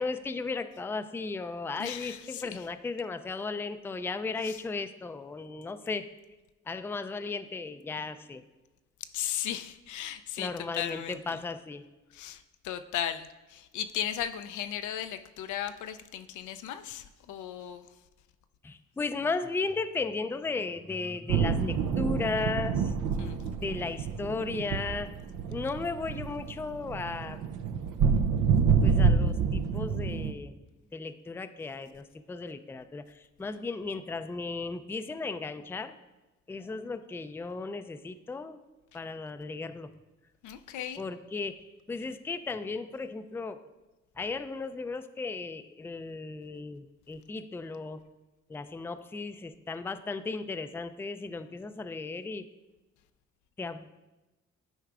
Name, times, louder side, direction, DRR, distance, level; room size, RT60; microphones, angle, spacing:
voice 1, 0.0-6.1 6.7-8.4 10.4-11.8 18.6-22.9 23.6-25.1 25.5-27.4 28.8-30.5 30.9-35.9 36.5-38.6 38.9-39.9 41.0-43.6 44.2-48.0 48.5-52.5 53.6-53.8, left 3 dB, 10° left, 10 dB, 0.4 m, -35 dB
voice 2, 1.8-2.7 4.4-4.6 9.1-11.4 12.1-17.9 23.2-23.5 40.4-41.0, left 10 dB, 75° left, 10 dB, 0.5 m, -36 dB
sound 1, 21.3-30.3, right 5 dB, 75° right, 0.5 m, -27 dB
11.5 x 4.6 x 2.4 m, 1.1 s
supercardioid pair, 55°, 31 cm